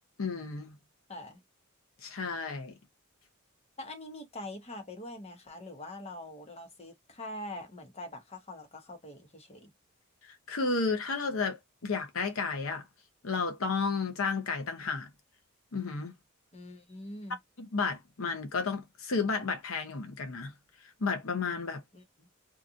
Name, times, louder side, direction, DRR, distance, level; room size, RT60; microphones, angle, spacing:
voice 1, 0.2-0.8 2.0-2.7 10.2-12.8 13.2-15.1 15.7-16.1 17.6-20.5 21.0-21.8, left 4 dB, 80° left, 0.7 m, -32 dB
voice 2, 1.1-1.4 3.8-9.7 16.5-17.4 21.9-22.3, left 1 dB, 30° left, 0.9 m, -44 dB
2.7 x 2.4 x 2.5 m
head